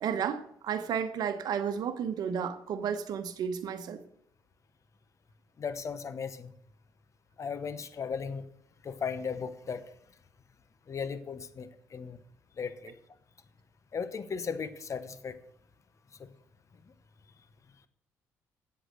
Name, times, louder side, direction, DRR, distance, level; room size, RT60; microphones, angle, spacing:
voice 1, 0.0-4.0, right 7 dB, 65° right, 1.0 m, -32 dB
voice 2, 5.6-6.5 7.4-8.4 8.8-9.8 10.9-12.2 12.6-12.9 13.9-15.3, left 6 dB, 45° left, 0.9 m, -36 dB
8.1 x 8.0 x 6.4 m
hypercardioid pair, 50°, 7 cm